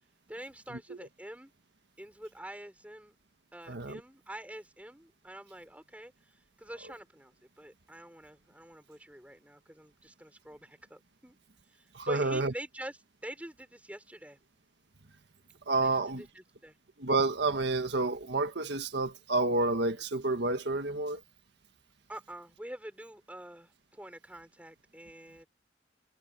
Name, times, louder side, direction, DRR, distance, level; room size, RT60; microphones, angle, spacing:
voice 1, 0.3-1.5 2.0-3.2 3.5-11.3 11.7-14.4 15.8-16.8 22.1-25.5, right 1 dB, 10° right, 5.9 m, -46 dB
voice 2, 3.7-4.0 11.9-12.5 15.7-16.2 17.0-21.2, right 3 dB, 70° right, 1.6 m, -29 dB
head